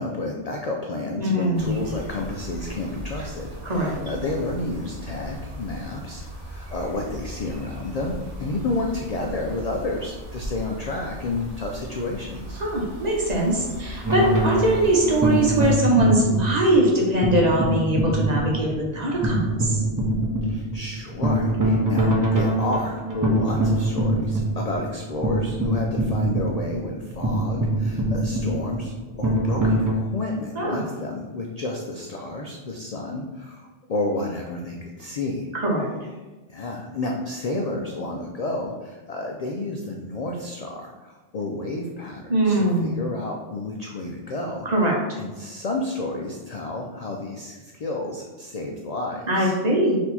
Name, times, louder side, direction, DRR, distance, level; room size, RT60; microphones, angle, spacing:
voice 1, 0.0-12.6 20.5-35.5 36.5-44.7 45.2-49.6, left 2 dB, 65° left, 1 dB, 0.3 m, -31 dB
voice 2, 1.2-1.8 3.6-3.9 12.6-19.8 30.6-30.8 35.6-35.9 42.3-43.0 44.6-45.0 49.3-50.0, right 1 dB, 40° right, -2 dB, 0.9 m, -21 dB
sound 1, 1.5-15.8, equal, 85° right, 1.2 m, -38 dB
sound 2, 14.0-29.9, right 1 dB, 25° right, 0.5 m, -24 dB
4.4 x 2.7 x 4.1 m, 1.2 s
omnidirectional pair, 1.2 m